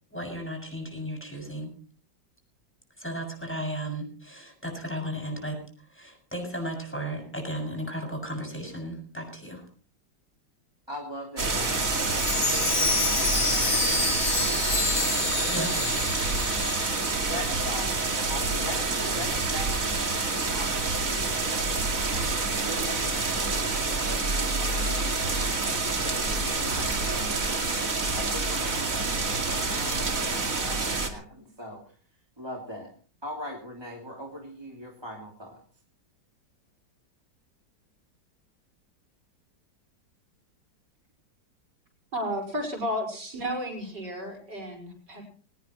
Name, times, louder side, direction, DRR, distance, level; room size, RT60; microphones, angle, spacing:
voice 1, 0.1-1.7 3.0-9.6 15.5-15.7, equal, 5° left, 2 dB, 6.9 m, -35 dB
voice 2, 10.9-12.1 12.4-15.5 17.3-21.9 22.6-27.7 28.1-31.8 32.4-32.9 33.2-35.6, equal, 15° right, -1 dB, 2.9 m, -41 dB
sound 1, 11.4-31.1, right 3 dB, 45° right, 2.8 m, -27 dB
Chime, 11.7-17.7 18.0-18.1 18.6-18.7, left 3 dB, 55° left, 3.0 m, -29 dB
voice 3, 42.1-45.2, equal, 65° right, 3 dB, 6.1 m, -32 dB
22.0 x 19.5 x 3.1 m, 0.42 s
omnidirectional pair, 2.0 m